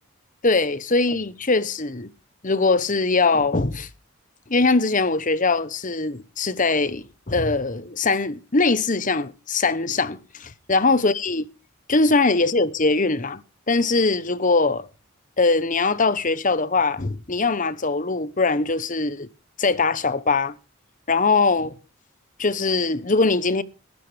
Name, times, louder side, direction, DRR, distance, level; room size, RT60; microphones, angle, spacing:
voice 1, 0.4-2.1 2.4-3.9 4.5-11.4 11.9-13.4 13.7-14.9 15.4-19.3 19.6-20.5 21.1-21.8 22.4-23.6, left 3 dB, 35° left, 1.0 m, -21 dB
20.0 x 13.5 x 3.4 m
head